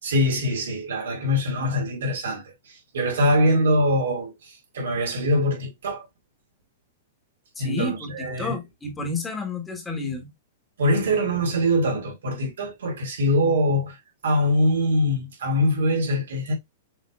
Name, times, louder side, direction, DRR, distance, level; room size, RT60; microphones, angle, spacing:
voice 1, 0.0-6.0 7.6-8.5 10.8-14.0 14.2-16.5, equal, 85° right, 2.4 m, -23 dB
voice 2, 7.5-10.3, left 3 dB, 10° left, 1.4 m, -31 dB
6.1 x 3.3 x 2.4 m
hypercardioid pair, 145°, 0 cm